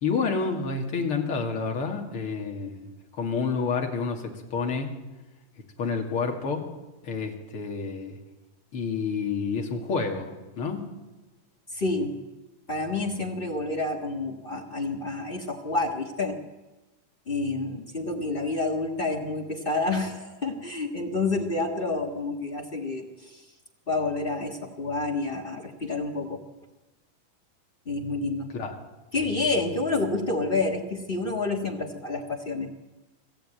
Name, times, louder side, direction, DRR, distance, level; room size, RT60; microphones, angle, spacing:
voice 1, 0.0-4.9 5.8-6.7 7.0-8.2 8.7-10.3 10.6-10.8 28.5-28.8, left 5 dB, 45° left, 2 dB, 2.8 m, -29 dB
voice 2, 11.7-12.1 12.7-16.4 17.3-23.4 23.9-26.4 27.8-28.5 29.1-32.7, left 3 dB, 75° left, 1 dB, 0.5 m, -29 dB
24.5 x 13.5 x 9.0 m, 1.1 s
omnidirectional pair, 3.9 m